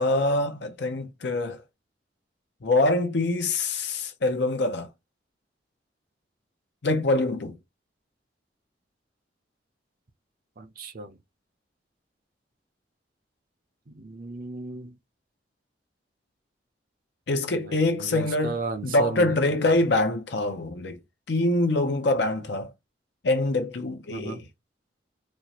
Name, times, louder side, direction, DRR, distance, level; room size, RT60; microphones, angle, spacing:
voice 1, 0.0-1.6 2.6-4.9 6.8-7.6 17.3-18.6 18.8-21.0 21.3-22.7 23.2-24.4, left 2 dB, 70° left, 0.6 m, -24 dB
voice 2, 10.6-11.1 14.0-15.0 17.5-19.4 24.1-24.4, right 4 dB, 55° right, 0.7 m, -35 dB
4.3 x 2.4 x 2.9 m
head